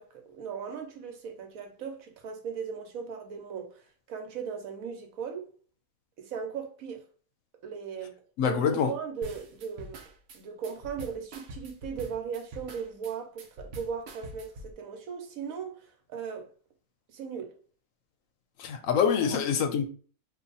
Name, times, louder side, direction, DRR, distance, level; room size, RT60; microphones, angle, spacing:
voice 1, 0.0-3.8 4.1-5.5 6.2-7.0 7.6-10.0 10.3-16.5 17.1-17.5 19.2-19.4, right 6 dB, 80° right, 1.2 m, -38 dB
voice 2, 8.4-8.9 18.6-19.8, left 7 dB, 75° left, 0.9 m, -25 dB
sound 1, 9.2-14.7, right 1 dB, 60° right, 0.8 m, -45 dB
2.8 x 2.5 x 3.8 m
omnidirectional pair, 1.5 m